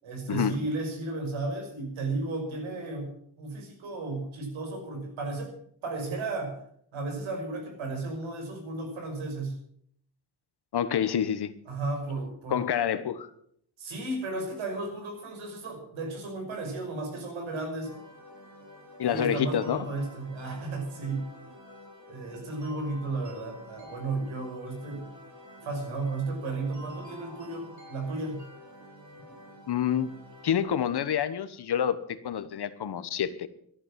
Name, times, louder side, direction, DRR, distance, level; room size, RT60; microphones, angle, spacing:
voice 1, 0.0-3.1 3.4-5.5 5.8-6.6 6.9-9.6 11.7-12.7 13.8-17.9 19.0-21.3 22.1-25.1 25.6-28.4, right 2 dB, 80° right, 4 dB, 6.0 m, -34 dB
voice 2, 10.7-11.5 12.5-13.3 19.0-19.9 29.7-30.1 30.4-33.5, left 9 dB, 55° left, 13 dB, 1.3 m, -28 dB
sound 1, 17.8-30.6, left 1 dB, 40° right, 7.0 m, -49 dB
14.0 x 11.0 x 7.4 m, 0.68 s
cardioid pair, 105°, 46 cm